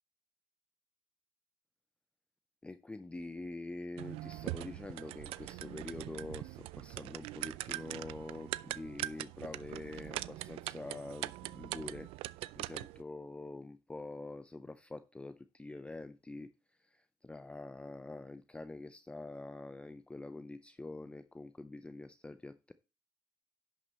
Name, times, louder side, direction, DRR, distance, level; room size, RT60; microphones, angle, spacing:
voice 1, 2.6-12.1 12.6-22.7, left 2 dB, 10° left, 0.6 m, -46 dB
sound 1, 4.0-13.0, right 18 dB, 80° right, 0.4 m, -42 dB
10.5 x 6.2 x 4.1 m
cardioid pair, 110°, 10 cm